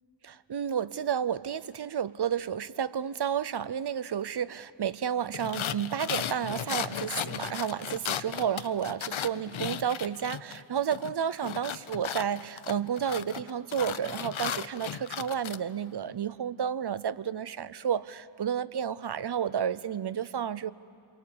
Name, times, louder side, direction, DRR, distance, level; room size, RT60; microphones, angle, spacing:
voice 1, 0.2-20.7, right 8 dB, 55° right, 17 dB, 0.6 m, -31 dB
sound 1, 5.3-10.6 10.9-15.6, left 9 dB, 75° left, 0.7 m, -35 dB
28.5 x 23.0 x 8.6 m, 2.6 s
wide cardioid pair, 95°, 48 cm